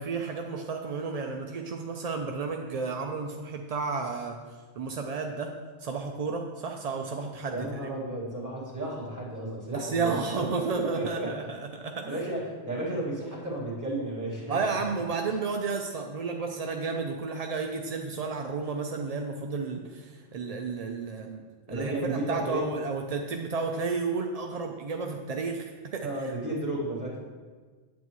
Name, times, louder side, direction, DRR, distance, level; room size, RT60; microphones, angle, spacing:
voice 1, 0.0-4.4 4.8-5.5 5.8-7.6 9.7-12.2 14.5-21.4 21.7-26.3, right 4 dB, 60° right, 3 dB, 0.4 m, -32 dB
voice 2, 7.5-11.5 12.0-14.8 21.7-22.7 26.0-27.2, right 1 dB, 15° right, -6 dB, 2.0 m, -33 dB
8.2 x 8.2 x 3.0 m, 1.4 s
omnidirectional pair, 1.2 m